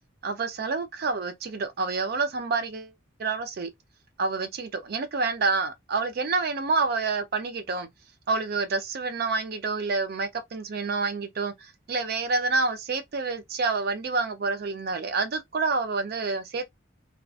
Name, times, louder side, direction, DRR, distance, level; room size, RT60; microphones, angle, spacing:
voice 1, 0.2-2.9 3.2-3.7 4.2-7.9 8.3-16.6, right 4 dB, 50° right, 0.4 m, -28 dB
2.3 x 2.3 x 2.3 m
head